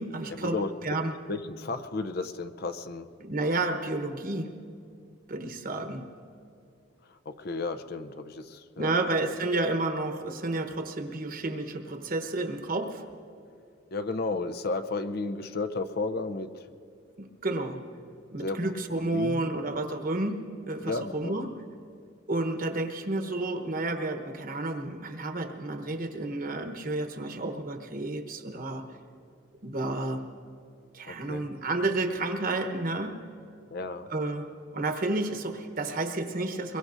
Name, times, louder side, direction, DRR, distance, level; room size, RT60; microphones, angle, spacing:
voice 1, 0.0-1.2 3.2-4.5 5.3-6.1 8.8-13.0 17.2-17.8 18.3-21.5 22.3-28.8 29.6-30.2 30.9-33.2 34.1-34.5 34.7-36.8, right 2 dB, 50° right, 6 dB, 1.0 m, -31 dB
voice 2, 1.3-3.1 7.3-9.0 13.9-16.5 18.4-18.6 18.9-19.5 20.8-21.4 31.1-31.4 33.7-34.1, left 3 dB, 55° left, 10 dB, 0.6 m, -33 dB
24.5 x 22.0 x 2.6 m, 2.4 s
head